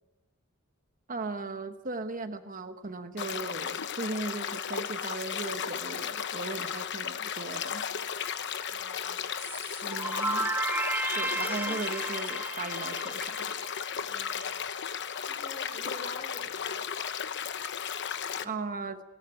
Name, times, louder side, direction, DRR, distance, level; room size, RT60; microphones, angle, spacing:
voice 1, 1.1-7.8 9.8-10.5 11.1-13.5 18.4-19.0, right 3 dB, 40° right, 8 dB, 1.1 m, -37 dB
sound 1, 3.2-18.4, left 8 dB, 55° left, 1.0 m, -35 dB
voice 2, 8.7-9.2 11.0-11.8 13.9-14.5 15.3-17.2 18.4-18.6, left 1 dB, 35° left, 6 dB, 5.1 m, -48 dB
sound 2, 9.4-14.1, right 2 dB, 10° right, 1.4 m, -33 dB
19.0 x 18.0 x 9.1 m, 0.99 s
head